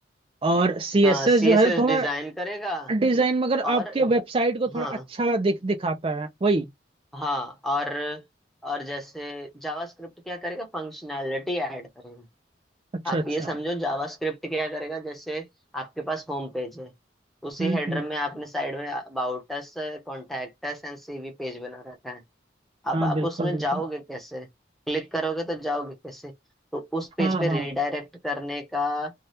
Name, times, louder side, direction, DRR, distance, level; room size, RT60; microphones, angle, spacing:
voice 1, 0.4-2.1 2.9-4.9 5.2-6.7 13.1-13.5 17.6-18.0 22.9-23.8 27.2-27.6, right 2 dB, 30° right, 0.4 m, -23 dB
voice 2, 1.0-2.9 3.6-4.1 4.7-5.0 7.1-8.2 8.6-12.3 13.0-15.5 15.7-16.9 17.4-22.2 22.8-24.5 24.9-26.3 26.7-29.1, equal, ahead, 0.8 m, -31 dB
2.7 x 2.3 x 3.3 m
head